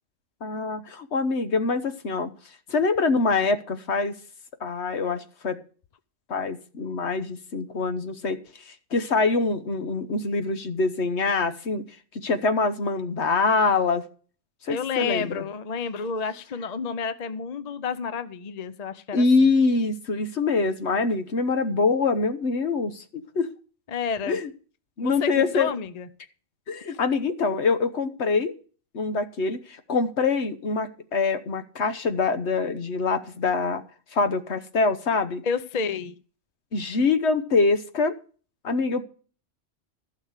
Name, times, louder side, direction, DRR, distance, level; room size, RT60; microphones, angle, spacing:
voice 1, 0.4-2.3 2.7-4.1 4.6-5.6 6.3-8.4 8.7-11.9 12.1-14.0 14.6-15.4 19.1-23.5 24.3-24.5 25.0-25.7 26.7-28.5 28.9-33.8 34.1-35.4 36.7-38.1 38.6-39.0, left 4 dB, 60° left, 9 dB, 1.3 m, -24 dB
voice 2, 14.7-19.2 23.9-24.4 25.0-26.1 35.4-36.1, left 5 dB, 40° left, 12 dB, 0.7 m, -30 dB
15.5 x 6.6 x 6.6 m, 0.40 s
omnidirectional pair, 1.3 m